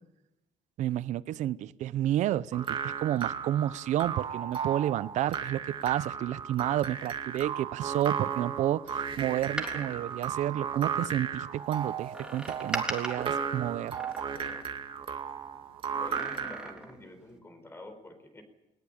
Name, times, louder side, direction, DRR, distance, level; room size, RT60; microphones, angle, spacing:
voice 1, 0.8-14.0, right 12 dB, 70° right, 18 dB, 0.7 m, -30 dB
sound 1, 2.5-16.7, right 7 dB, 40° right, 2.2 m, -35 dB
Door, 9.4-11.2 12.1-15.0 15.9-17.1 17.4-17.5, right 1 dB, 5° right, 3.5 m, -40 dB
voice 2, 16.0-18.4, left 1 dB, 20° left, 7 dB, 4.2 m, -47 dB
20.5 x 19.5 x 8.8 m, 0.96 s
cardioid pair, 135°, 13 cm